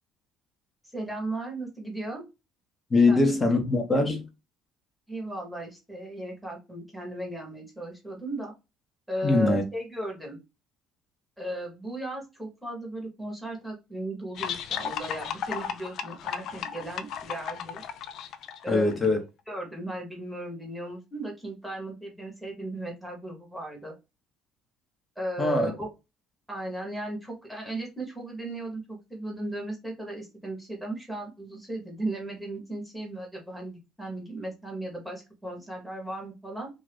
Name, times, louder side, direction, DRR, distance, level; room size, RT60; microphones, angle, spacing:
voice 1, 0.9-2.2 3.1-3.2 5.1-8.5 9.1-10.4 11.4-17.8 18.6-18.9 19.5-23.9 25.2-25.9 26.5-36.7, right 1 dB, ahead, 1.2 m, -36 dB
voice 2, 2.9-4.2 9.2-9.6 18.7-19.2 25.4-25.7, left 2 dB, 25° left, 1.0 m, -22 dB
sound 1, 14.4-19.1, left 8 dB, 65° left, 0.4 m, -35 dB
2.7 x 2.5 x 3.4 m
cardioid pair, 95°, 0 cm